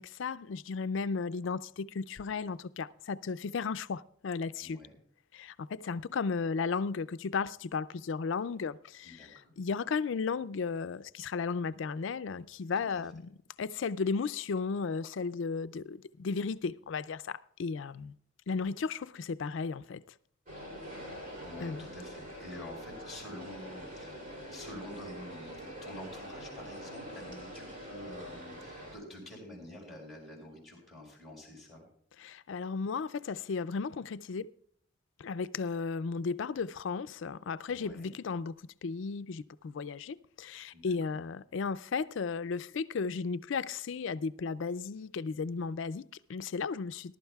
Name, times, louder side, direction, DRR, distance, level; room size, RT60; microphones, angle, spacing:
voice 1, 0.0-4.8 5.3-13.3 13.6-18.1 18.5-20.0 21.6-21.8 32.2-34.5 35.2-38.5 38.8-47.2, left 5 dB, 70° left, 0.4 m, -35 dB
voice 2, 4.6-5.0 9.0-9.5 12.9-13.0 21.4-24.2 24.5-31.9 37.7-38.1 40.7-40.9, left 1 dB, ahead, 5.4 m, -47 dB
sound 1, 20.5-28.9, equal, 40° right, 3.1 m, -45 dB
20.0 x 12.0 x 2.3 m
head